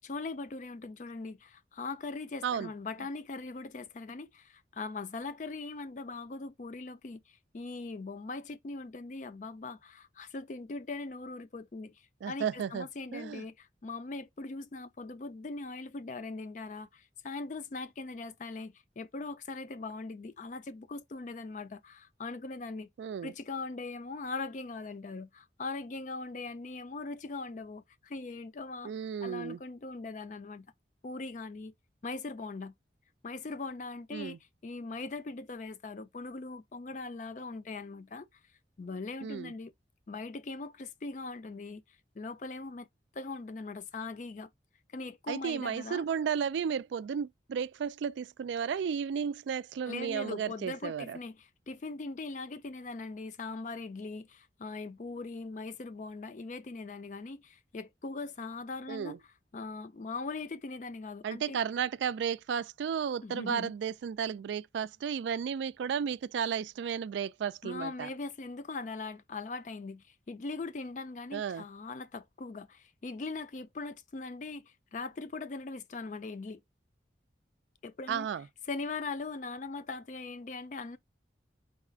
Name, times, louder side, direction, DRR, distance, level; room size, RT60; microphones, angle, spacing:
voice 1, 0.0-22.9 23.2-28.9 29.2-30.7 31.0-31.7 32.0-32.7 33.2-34.4 34.6-38.3 38.8-39.7 40.1-41.8 42.2-42.9 43.1-44.5 44.9-46.0 49.9-59.2 59.5-61.6 63.2-63.7 67.6-76.6 77.8-78.3 78.7-81.0, left 3 dB, 40° left, 0.4 m, -40 dB
voice 2, 12.2-12.9 13.1-13.4 23.0-23.3 28.8-29.6 34.1-34.4 39.2-39.5 45.3-51.2 58.9-59.2 61.2-68.1 71.3-71.6 78.1-78.4, right 7 dB, 75° right, 0.3 m, -33 dB
4.1 x 2.4 x 3.7 m
head